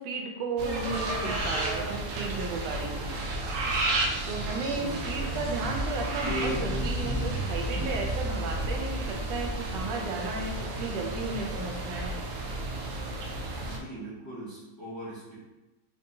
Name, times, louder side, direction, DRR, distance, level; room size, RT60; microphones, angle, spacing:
voice 1, 0.0-3.2 4.2-12.2, right 3 dB, 90° right, 1 dB, 1.3 m, -34 dB
sound 1, 0.6-13.8, right 2 dB, 70° right, 0.7 m, -33 dB
voice 2, 4.5-6.0 13.6-15.4, right 1 dB, 15° left, -9 dB, 0.7 m, -42 dB
sound 2, 5.5-10.2, right 1 dB, 60° left, 0.5 m, -33 dB
3.8 x 2.7 x 2.6 m, 1.1 s
omnidirectional pair, 1.9 m